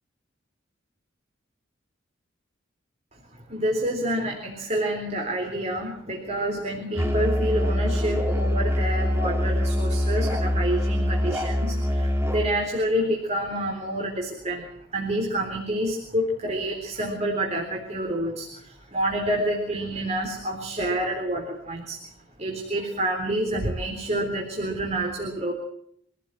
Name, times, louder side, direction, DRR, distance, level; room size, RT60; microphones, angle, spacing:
voice 1, 3.3-22.0 22.4-25.5, right 1 dB, 35° right, 1 dB, 3.8 m, -28 dB
Musical instrument, 7.0-12.5, left 1 dB, 15° right, 2.0 m, -24 dB
26.0 x 16.0 x 7.7 m, 0.71 s
head